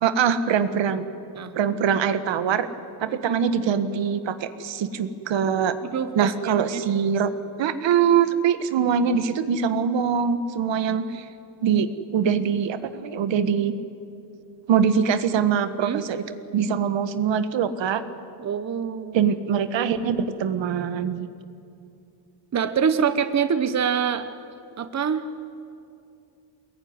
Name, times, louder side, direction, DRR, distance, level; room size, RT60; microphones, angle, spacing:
voice 1, 0.0-1.0 1.5-2.7 3.0-5.7 6.1-7.3 7.6-11.2 11.6-13.7 14.7-16.2 16.5-18.0 19.1-21.3, right 7 dB, 75° right, 10 dB, 1.6 m, -23 dB
voice 2, 3.1-3.4 5.9-6.8 15.8-16.0 18.4-19.2 22.5-24.3 24.8-25.2, right 7 dB, 35° right, 10 dB, 1.1 m, -25 dB
24.0 x 21.0 x 9.7 m, 2.6 s
cardioid pair, 110°, 45 cm